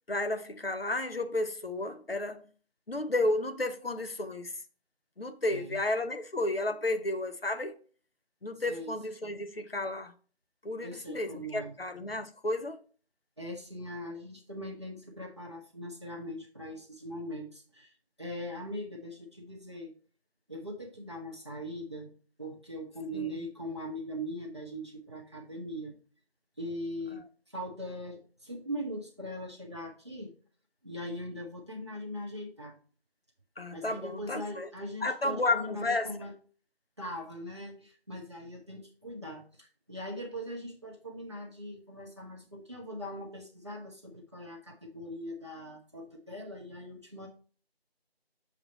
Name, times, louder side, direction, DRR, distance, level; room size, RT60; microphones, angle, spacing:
voice 1, 0.1-2.4 2.9-4.5 5.2-7.7 8.4-10.1 10.6-12.8 23.1-23.4 27.1-27.2 33.6-34.7 35.0-36.1, left 2 dB, 65° left, 0.9 m, -32 dB
voice 2, 5.5-5.8 8.7-8.9 10.8-11.8 13.4-19.9 20.5-22.1 22.4-25.9 26.6-27.2 27.5-30.3 30.8-32.8 33.7-36.3 37.0-47.3, equal, 25° right, 1.3 m, -41 dB
7.2 x 3.3 x 5.3 m
figure-of-eight pair, 170°, 32 cm